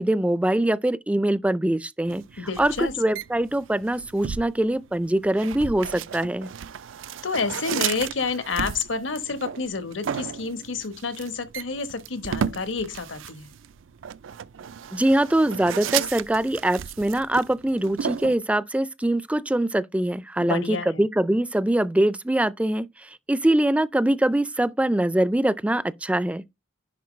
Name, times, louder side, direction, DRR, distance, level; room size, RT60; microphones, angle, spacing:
voice 1, 0.0-2.2 2.6-6.5 14.9-26.4, right 1 dB, 5° right, 0.3 m, -23 dB
sound 1, 2.1-18.4, right 8 dB, 85° right, 0.4 m, -34 dB
voice 2, 2.4-2.9 7.2-13.5 20.4-21.0, left 4 dB, 75° left, 1.1 m, -29 dB
10.5 x 4.5 x 3.1 m
head